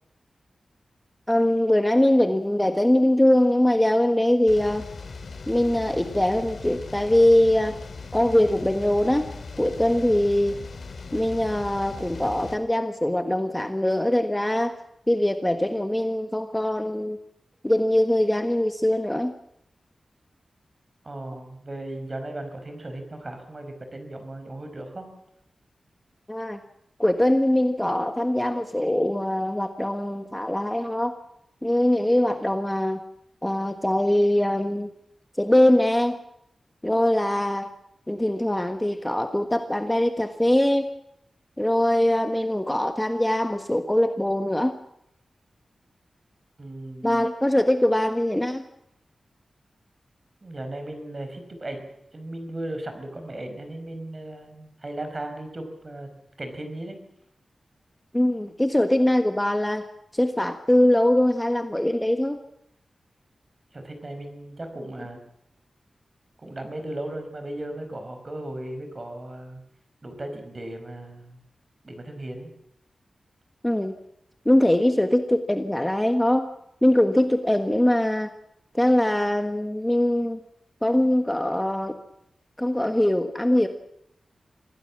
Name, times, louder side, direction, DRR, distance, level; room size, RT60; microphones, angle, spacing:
voice 1, 1.3-4.8 5.5-7.8 8.1-9.3 9.6-10.6 11.1-14.7 15.1-17.2 17.6-19.3 26.3-26.6 27.0-31.2 31.6-33.0 33.4-34.9 35.4-36.2 36.8-37.7 38.1-40.9 41.6-44.7 47.0-48.6 58.1-59.9 60.1-62.4 73.6-74.0 74.4-76.5 76.8-78.3 78.7-80.4 80.8-82.0 82.6-83.7, left 1 dB, 10° left, 7 dB, 1.4 m, -22 dB
sound 1, 4.5-12.5, left 4 dB, 65° left, 3.4 m, -39 dB
voice 2, 21.0-25.1 46.6-47.2 50.4-51.8 52.1-56.1 56.4-57.0 63.7-65.2 66.4-69.6 70.0-71.4 71.8-72.5, right 1 dB, 35° right, 6 dB, 5.3 m, -36 dB
26.0 x 17.0 x 7.4 m, 0.78 s
wide cardioid pair, 105°, 0 cm